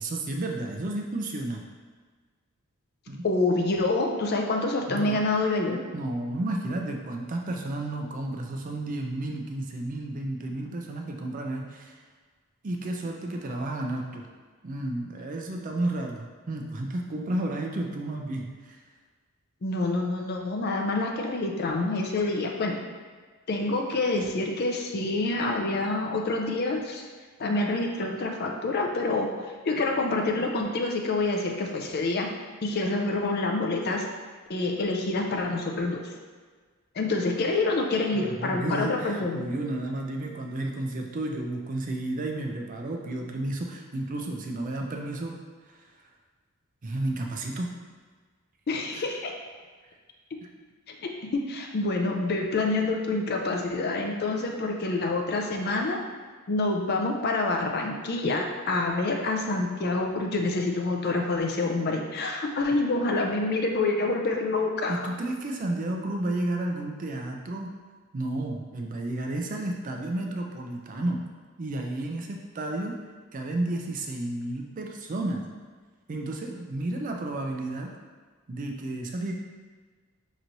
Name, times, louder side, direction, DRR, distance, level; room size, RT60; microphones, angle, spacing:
voice 1, 0.0-1.6 3.1-3.2 4.9-5.2 5.9-12.0 12.6-14.3 14.6-18.8 38.1-45.4 46.8-47.7 64.9-67.7 68.1-71.2 71.6-73.0 73.3-75.5 76.1-77.9 78.5-79.3, right 2 dB, 35° right, 2 dB, 0.4 m, -32 dB
voice 2, 3.2-5.8 19.6-22.8 23.5-27.0 27.4-29.3 29.6-32.3 32.6-34.1 34.5-36.1 37.0-39.5 48.7-49.3 50.9-51.0 51.3-56.0 56.5-64.9, left 2 dB, 45° left, 2 dB, 0.4 m, -27 dB
5.5 x 3.0 x 2.6 m, 1.5 s
head